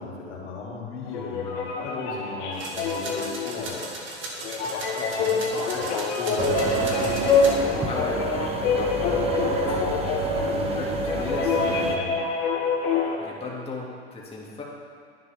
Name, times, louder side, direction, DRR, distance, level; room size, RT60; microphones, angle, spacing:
voice 1, 0.0-3.9 4.3-5.9 6.2-7.2 7.6-7.8 9.0-11.2 11.5-12.2, left 4 dB, 80° left, -3 dB, 3.0 m, -36 dB
sound 1, 1.1-13.2, left 5 dB, 55° left, 2.8 m, -26 dB
sound 2, 2.5-7.5, right 2 dB, 35° right, 2.0 m, -38 dB
voice 2, 5.5-5.8 7.9-8.5 10.2-12.3 13.2-14.6, left 3 dB, 15° left, -4 dB, 2.4 m, -37 dB
sound 3, 6.4-12.0, right 4 dB, 15° right, 0.9 m, -28 dB
11.0 x 10.5 x 3.6 m, 2.1 s
hypercardioid pair, 110°, 35 cm